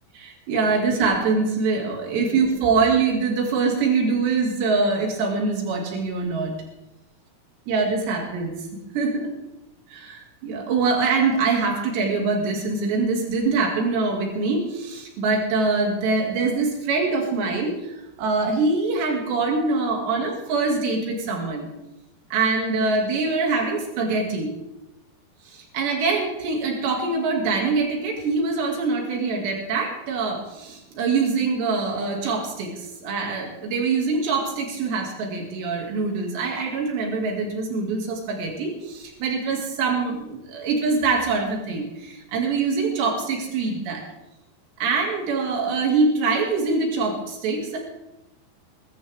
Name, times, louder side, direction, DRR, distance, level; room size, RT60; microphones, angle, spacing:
voice 1, 0.1-6.5 7.7-8.5 8.9-9.3 9.9-21.7 22.3-24.6 25.5-44.0 44.8-47.8, right 4 dB, 80° right, 1 dB, 4.4 m, -24 dB
20.5 x 13.5 x 3.5 m, 0.92 s
omnidirectional pair, 4.9 m